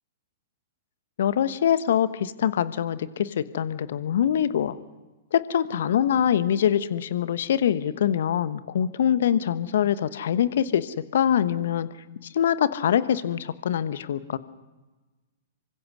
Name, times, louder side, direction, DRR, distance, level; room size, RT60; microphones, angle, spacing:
voice 1, 1.2-4.8 5.3-11.9 12.3-14.4, left 9 dB, 60° left, 14 dB, 1.2 m, -24 dB
27.5 x 24.5 x 6.3 m, 1.2 s
figure-of-eight pair, 110°, 0 cm